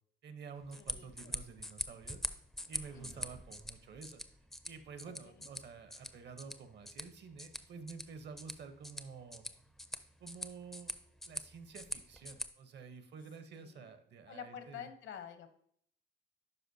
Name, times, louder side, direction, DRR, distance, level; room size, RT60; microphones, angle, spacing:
voice 1, 0.2-2.2 2.7-4.2 4.6-9.5 10.2-10.9 11.2-14.9, right 5 dB, 60° right, 9 dB, 0.9 m, -50 dB
sound 1, 0.6-12.5, equal, ahead, 0.4 m, -45 dB
voice 2, 0.8-1.4 2.9-3.3 5.2-5.5 13.5-13.9 14.3-15.5, left 8 dB, 70° left, 9 dB, 0.9 m, -49 dB
11.0 x 4.7 x 2.7 m, 0.65 s
cardioid pair, 90°, 20 cm